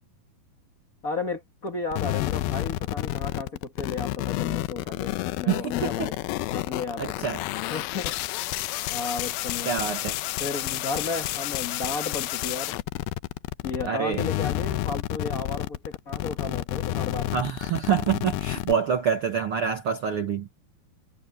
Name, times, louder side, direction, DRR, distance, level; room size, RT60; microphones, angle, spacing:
voice 1, 1.0-6.2 6.5-7.3 7.7-8.2 8.9-9.7 10.4-12.8 13.6-17.3, left 3 dB, 45° left, 1.1 m, -34 dB
sound 1, 1.9-13.9 14.1-18.7, left 17 dB, 90° left, 2.5 m, -30 dB
voice 2, 5.5-6.1 7.0-7.4 9.6-10.2 13.8-14.3 17.3-20.5, right 7 dB, 60° right, 1.5 m, -26 dB
omnidirectional pair, 4.3 m